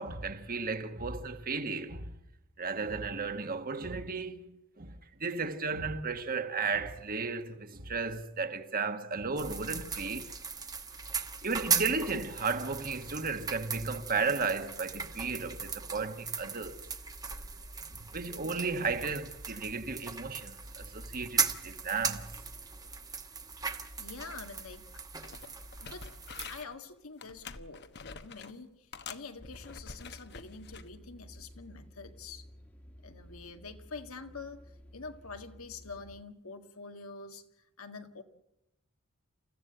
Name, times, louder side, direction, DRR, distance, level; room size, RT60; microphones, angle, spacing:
voice 1, 0.0-2.1 2.6-10.3 11.4-16.8 18.0-22.4, right 4 dB, 40° right, 1.4 m, -34 dB
sound 1, 9.4-26.6, right 5 dB, 20° right, 1.2 m, -38 dB
voice 2, 24.0-25.0 25.8-26.1 26.5-32.5 33.0-37.4 37.8-38.2, left 4 dB, 80° left, 1.8 m, -46 dB
sound 2, 24.9-25.0 25.2-26.8 27.2-28.6 28.9-30.9 31.4-31.6, left 5 dB, 50° left, 1.1 m, -47 dB
sound 3, 29.4-36.2, equal, 5° left, 1.5 m, -53 dB
29.0 x 15.5 x 7.9 m
head